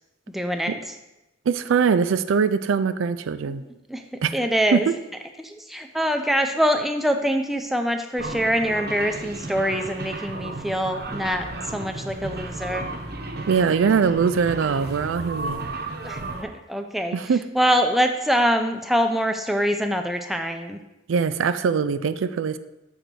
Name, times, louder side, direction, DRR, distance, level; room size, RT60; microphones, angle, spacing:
voice 1, 0.3-0.8 3.5-3.6 3.9-4.0 4.3-4.9 5.4-12.9 16.0-17.2 17.6-20.8, equal, ahead, 5 dB, 0.4 m, -24 dB
voice 2, 1.5-3.6 4.2-4.4 4.7-4.9 13.5-15.6 17.1-17.4 21.1-22.6, right 6 dB, 80° right, 13 dB, 0.4 m, -22 dB
sound 1, 8.2-16.4, right 2 dB, 50° right, 0.8 m, -34 dB
6.6 x 3.9 x 6.1 m, 0.95 s
head